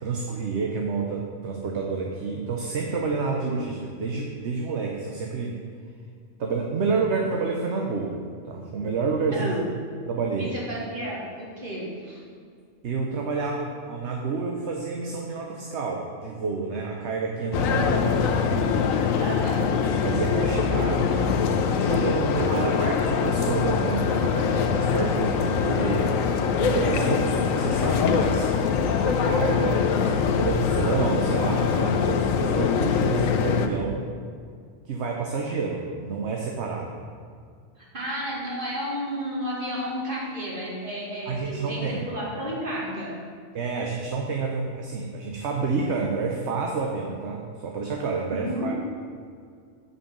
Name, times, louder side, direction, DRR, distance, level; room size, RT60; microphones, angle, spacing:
voice 1, 0.0-5.6 6.4-8.2 8.4-9.5 10.1-10.5 12.8-19.2 20.0-26.1 26.6-28.5 29.0-34.1 34.8-37.0 41.3-42.1 43.5-48.7, right 4 dB, 60° right, 0 dB, 1.1 m, -29 dB
voice 2, 9.3-9.7 10.4-12.3 19.2-19.6 37.8-43.2 48.3-48.7, equal, 40° right, -5 dB, 2.3 m, -32 dB
sound 1, 17.5-33.7, left 6 dB, 90° left, 1.1 m, -23 dB
7.3 x 5.5 x 7.0 m, 2.2 s
omnidirectional pair, 1.3 m